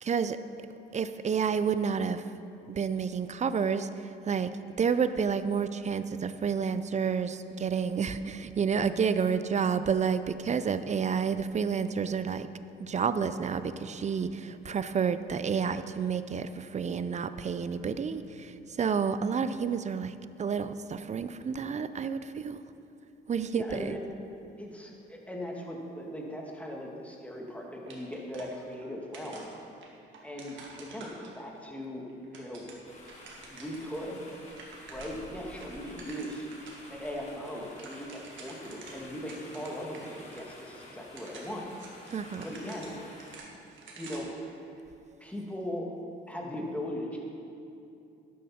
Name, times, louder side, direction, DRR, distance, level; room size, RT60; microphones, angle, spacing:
voice 1, 0.0-0.4 0.9-2.2 2.7-3.9 4.2-4.5 4.8-12.5 12.8-22.6 23.3-24.0 42.1-42.4, right 6 dB, 35° right, 12 dB, 0.5 m, -30 dB
voice 2, 23.5-24.0 24.6-29.5 30.2-32.1 32.3-32.7 33.5-34.2 34.9-36.5 36.9-41.7 42.3-42.9 44.0-44.3 45.2-45.9 46.3-47.2, equal, 5° left, -1 dB, 2.0 m, -39 dB
sound 1, 27.9-28.9 29.1-31.6 32.1-33.9 34.2-34.3 34.5-35.3 35.6-36.8 37.2-37.3 37.6-40.0 40.3-40.4 41.0-44.4, right 3 dB, 75° right, 1.9 m, -49 dB
sound 2, 32.8-43.4, left 1 dB, 35° left, 2.7 m, -50 dB
12.0 x 10.0 x 4.3 m, 2.7 s
cardioid pair, 90°, 20 cm